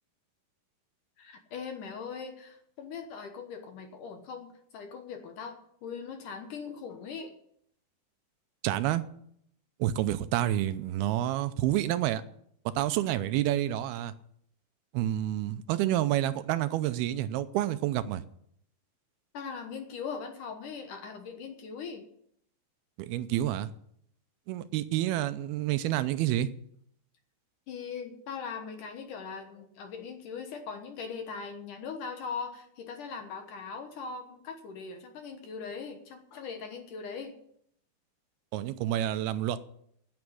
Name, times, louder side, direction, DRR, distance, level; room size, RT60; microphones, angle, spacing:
voice 1, 1.2-7.3 19.3-22.1 27.7-37.4, left 5 dB, 65° left, 5 dB, 2.4 m, -40 dB
voice 2, 8.6-9.0 9.8-12.2 12.8-14.1 14.9-18.2 23.0-23.7 24.5-26.5 38.5-39.6, right 13 dB, 80° right, 13 dB, 2.5 m, -29 dB
9.6 x 9.1 x 9.9 m, 0.69 s
omnidirectional pair, 4.6 m